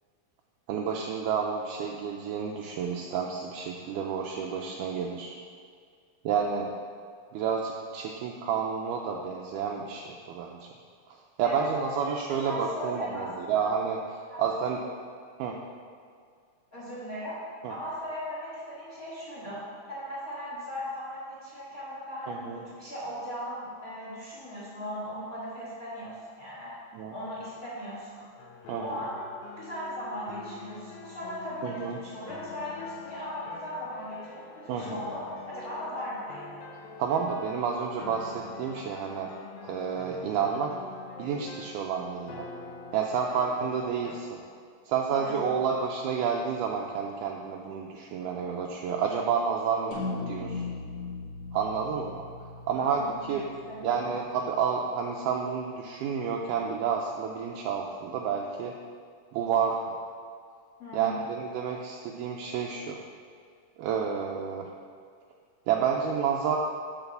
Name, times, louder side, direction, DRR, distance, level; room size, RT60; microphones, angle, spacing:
voice 1, 0.7-5.4 6.3-6.7 7.3-10.7 11.4-14.8 15.4-15.6 17.6-17.7 22.3-22.6 26.9-27.2 28.7-29.0 31.6-32.0 34.7-35.0 37.0-39.3 39.6-40.7 41.2-42.5 42.9-44.4 44.9-50.0 50.3-50.6 51.5-52.2 52.7-53.5 53.8-58.7 59.3-60.0 60.9-63.0 63.8-64.7 65.7-66.6, right 6 dB, 80° right, 0 dB, 1.9 m, -30 dB
voice 2, 11.4-12.1 12.4-13.6 14.3-14.4 16.7-17.4 17.7-19.6 19.9-26.7 27.1-28.2 28.8-29.1 29.6-36.6 45.1-45.5 52.8-54.1 60.8-61.2, equal, 35° left, -8 dB, 1.5 m, -38 dB
sound 1, 28.4-44.2, left 5 dB, 80° left, 1.5 m, -45 dB
sound 2, 49.9-54.4, left 3 dB, 55° left, 1.7 m, -38 dB
7.9 x 4.1 x 6.8 m, 2.1 s
omnidirectional pair, 3.9 m